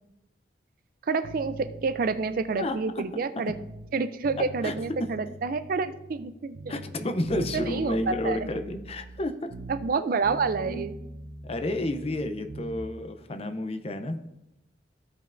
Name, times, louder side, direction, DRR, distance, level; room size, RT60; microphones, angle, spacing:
voice 1, 1.1-3.5 3.9-6.8 7.3-8.5 9.7-10.9, right 4 dB, 50° right, 11 dB, 0.4 m, -28 dB
sound 1, 1.2-3.9 4.2-6.3 6.5-10.0 10.2-12.9, right 2 dB, 90° right, 0.7 m, -43 dB
voice 2, 2.6-3.1 4.6-4.7 5.0-5.1 6.7-9.5 10.6-10.9 11.4-14.2, left 1 dB, 35° left, 8 dB, 0.6 m, -31 dB
14.5 x 5.4 x 2.5 m, 0.91 s
head